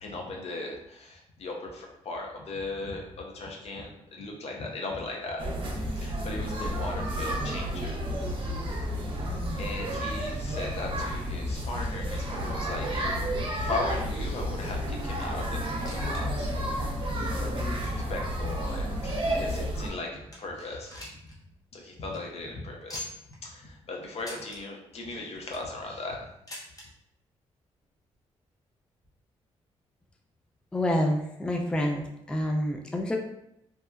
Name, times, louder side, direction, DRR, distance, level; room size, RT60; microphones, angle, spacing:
voice 1, 0.0-5.4 6.0-8.0 8.4-8.5 9.0-9.1 9.6-13.1 13.6-16.8 17.3-20.9 21.7-23.1 23.4-26.2, left 2 dB, 60° left, 0 dB, 0.6 m, -37 dB
sound 1, 5.4-19.9, equal, 45° right, 0.6 m, -31 dB
sound 2, 15.8-16.2 16.5-16.6 17.3-17.4 18.1-19.6 20.0-20.1 20.3-21.4 21.7-21.8 22.0-22.2 22.9-23.4 24.2-24.6 25.2-25.7 26.5-26.9 27.8-27.9 28.1-28.2 29.0-29.1, left 1 dB, 30° left, 0.9 m, -43 dB
voice 2, 30.7-33.2, left 1 dB, 10° left, 1 dB, 0.4 m, -28 dB
2.8 x 2.2 x 2.2 m, 0.80 s
supercardioid pair, 60°, 12 cm